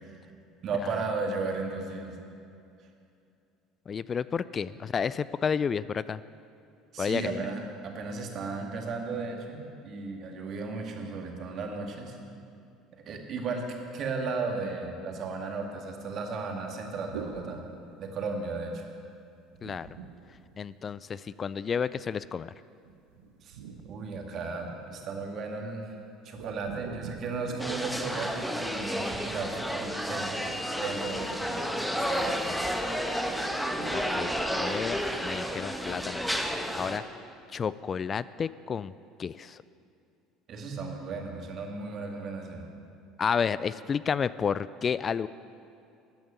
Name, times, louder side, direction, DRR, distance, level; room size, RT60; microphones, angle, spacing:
voice 1, 0.6-2.2 6.9-12.2 12.9-13.6 13.9-17.6 18.0-18.8 23.4-23.6 23.8-26.0 26.2-30.5 30.8-32.7 40.5-42.7, right 4 dB, 50° right, 2 dB, 2.1 m, -35 dB
voice 2, 3.9-6.2 7.0-7.4 19.6-20.0 20.6-22.5 33.9-37.0 37.5-38.9 39.2-39.6 43.2-45.3, left 6 dB, 35° left, 17 dB, 0.3 m, -31 dB
sound 1, 17.1-18.5 19.6-21.1 22.8-24.9 26.4-28.9 30.0-31.9 33.4-34.4, right 6 dB, 80° right, 0.9 m, -46 dB
sound 2, 27.6-37.0, equal, ahead, 1.2 m, -31 dB
13.5 x 8.8 x 7.1 m, 2.6 s
hypercardioid pair, 70°, 0 cm